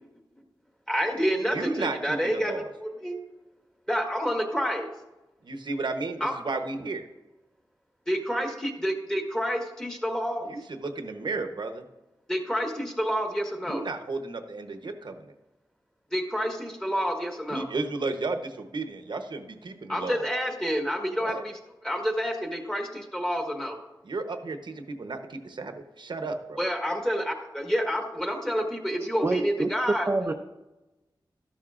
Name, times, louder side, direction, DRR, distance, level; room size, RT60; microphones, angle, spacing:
voice 1, 0.9-3.2 3.9-4.9 6.2-6.3 8.1-10.5 12.3-13.8 16.1-17.6 19.9-21.5 21.8-23.8 26.6-30.1, equal, 5° left, 3 dB, 1.4 m, -28 dB
voice 2, 1.4-2.7 5.4-7.1 10.4-11.8 13.6-15.3 17.5-20.3 21.2-21.4 24.0-26.6, right 3 dB, 70° right, 6 dB, 0.9 m, -33 dB
voice 3, 28.9-29.7 30.1-30.3, right 2 dB, 30° right, 4 dB, 0.5 m, -27 dB
13.0 x 10.5 x 2.5 m, 1.0 s
wide cardioid pair, 110°, 8 cm